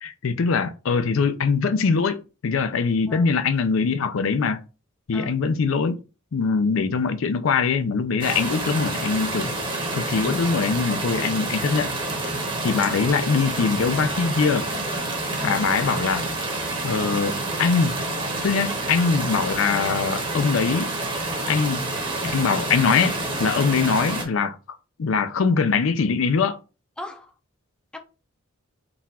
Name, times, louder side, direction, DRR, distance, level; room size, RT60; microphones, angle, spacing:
voice 1, 0.0-4.6 5.1-6.0 6.3-9.5 9.9-11.9 12.6-14.7 15.4-16.2 16.8-18.0 18.4-20.9 21.5-21.9 22.3-24.6 25.0-26.6, left 5 dB, 65° left, 0.4 m, -22 dB
sound 1, 8.2-24.2, right 2 dB, 25° right, 0.9 m, -28 dB
voice 2, 27.0-27.3 27.9-28.0, left 1 dB, 5° left, 0.5 m, -37 dB
3.9 x 2.4 x 4.1 m
head